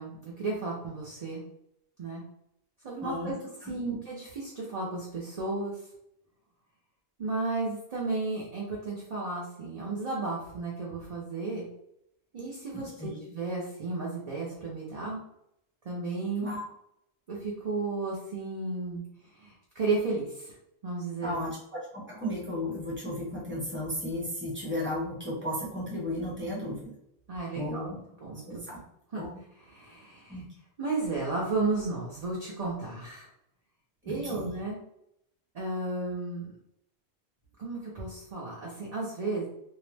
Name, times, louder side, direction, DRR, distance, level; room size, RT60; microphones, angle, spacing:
voice 1, 0.0-1.4 2.0-2.2 2.8-3.4 3.7-5.7 7.2-11.7 12.3-12.9 13.3-15.2 15.8-16.5 17.3-19.0 19.3-20.5 20.8-21.4 27.3-27.8 28.2-28.6 29.1-29.2 29.6-30.4 30.8-33.3 34.0-34.8 35.5-36.5 37.6-39.5, right 3 dB, 45° right, -4 dB, 0.6 m, -33 dB
voice 2, 3.0-3.3 3.6-3.9 13.0-13.1 16.4-16.7 21.2-26.9 27.5-28.0 28.5-28.8 29.2-29.3 30.3-30.5 34.0-34.5, left 1 dB, 10° right, -4 dB, 0.9 m, -34 dB
2.7 x 2.0 x 3.2 m, 0.78 s
omnidirectional pair, 1.1 m